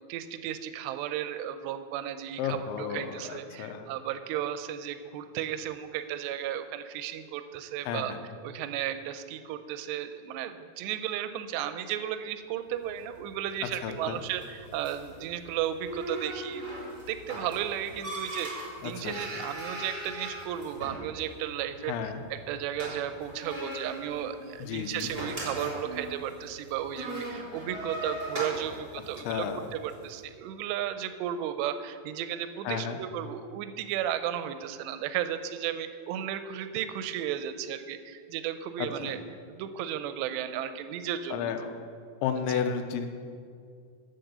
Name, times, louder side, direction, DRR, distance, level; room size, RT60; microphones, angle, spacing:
voice 1, 0.1-8.1 8.4-16.7 17.1-21.9 22.3-29.5 29.7-39.2 39.5-41.5 42.4-42.6, right 10 dB, 85° right, 10 dB, 2.6 m, -34 dB
voice 2, 2.4-3.9 7.8-8.2 13.8-14.2 18.8-19.1 21.9-22.2 24.6-25.1 29.2-29.7 32.6-33.0 38.8-39.2 41.3-41.7 42.2-43.1, left 7 dB, 85° left, 7 dB, 3.0 m, -32 dB
sound 1, 12.8-30.1, right 1 dB, 15° right, 2.1 m, -40 dB
8.6 x 7.8 x 6.7 m, 2.2 s
omnidirectional pair, 5.2 m